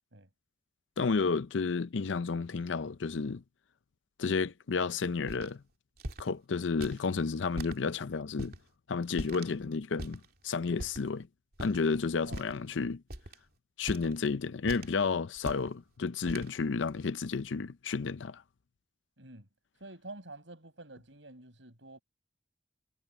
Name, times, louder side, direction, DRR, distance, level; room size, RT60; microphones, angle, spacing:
voice 1, 1.0-3.4 4.2-5.6 6.2-8.5 8.9-11.3 11.6-13.0 13.8-18.4, left 4 dB, 85° left, 0.5 m, -31 dB
sound 1, 5.3-5.5 6.0-6.3 6.8-7.0 7.5-7.8 8.4-8.6 9.2-9.5 10.0-10.3 10.8-11.1 11.5-11.9 12.2-12.7 13.1-13.3 13.9-14.3 14.7-15.0 15.4-15.7 16.3-16.5, right 1 dB, 55° right, 2.9 m, -41 dB
voice 2, 19.2-19.5 19.8-22.0, right 2 dB, 80° right, 5.8 m, -48 dB
head